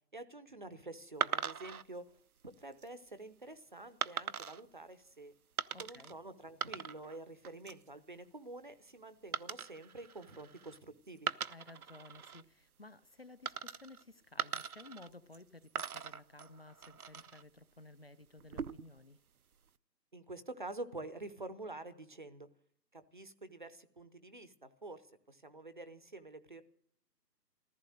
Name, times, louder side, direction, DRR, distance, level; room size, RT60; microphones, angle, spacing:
voice 1, 0.1-2.0 2.6-5.3 5.8-11.3 20.1-22.5 22.9-26.6, right 2 dB, 30° right, 13 dB, 0.8 m, -48 dB
sound 1, 1.2-1.8 2.5-2.9 4.0-4.6 5.6-6.1 6.4-7.2 7.4-7.9 9.3-10.8 11.2-12.4 13.4-14.0 14.4-15.4 15.7-17.4 18.4-19.0, right 7 dB, 60° right, 0.7 m, -40 dB
voice 2, 5.7-6.2 11.5-19.2, left 2 dB, 40° left, 15 dB, 0.7 m, -55 dB
15.0 x 14.0 x 6.5 m, 0.65 s
figure-of-eight pair, 160°, 50 cm